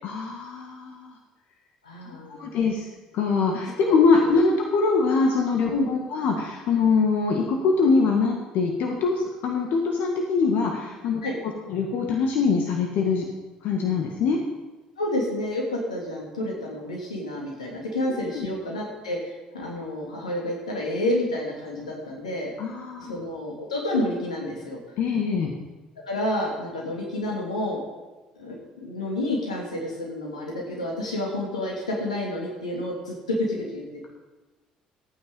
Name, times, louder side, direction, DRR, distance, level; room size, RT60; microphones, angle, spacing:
voice 1, 0.0-1.1 2.3-2.9 3.1-11.2 11.7-13.3 13.6-14.4 18.1-18.5 22.6-23.2 25.0-25.5, left 4 dB, 65° left, 1 dB, 1.7 m, -23 dB
voice 2, 1.8-2.5 3.9-4.0 5.7-5.9 11.2-11.3 15.0-22.5 23.0-24.8 26.1-27.8 28.4-34.1, left 1 dB, 90° left, -2 dB, 2.8 m, -29 dB
14.0 x 9.2 x 5.4 m, 1.2 s
hypercardioid pair, 55°, 3 cm